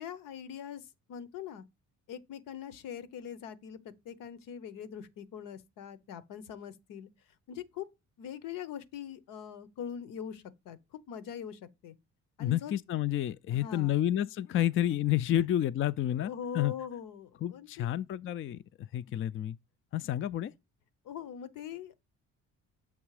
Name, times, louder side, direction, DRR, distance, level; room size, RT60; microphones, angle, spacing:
voice 1, 0.0-1.6 2.1-3.8 4.0-7.1 7.5-7.9 8.2-10.8 11.1-11.9 12.4-12.7 13.5-14.0 14.5-14.6 15.3-15.4 16.1-17.9 21.0-22.0, left 8 dB, 85° left, 0.9 m, -42 dB
voice 2, 12.4-16.7 17.4-18.6 18.9-19.6 19.9-20.5, left 12 dB, 40° left, 0.4 m, -30 dB
7.1 x 3.3 x 4.8 m
cardioid pair, 85°, 32 cm